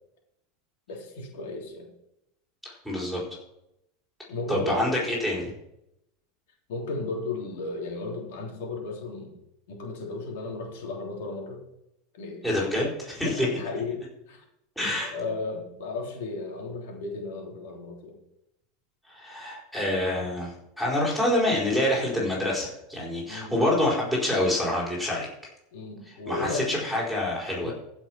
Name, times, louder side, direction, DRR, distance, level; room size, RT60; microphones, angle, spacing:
voice 1, 0.9-1.9 4.3-5.2 6.7-9.4 9.7-11.6 12.1-12.6 13.2-14.4 15.0-18.2 23.3-23.5 25.7-26.7 27.6-27.7, left 3 dB, 75° left, 0 dB, 3.4 m, -35 dB
voice 2, 2.6-3.2 4.5-5.5 12.4-13.5 14.8-15.1 19.1-25.3 26.3-27.7, left 1 dB, ahead, -4 dB, 4.5 m, -26 dB
15.0 x 6.1 x 5.8 m, 0.83 s
supercardioid pair, 150°, 0 cm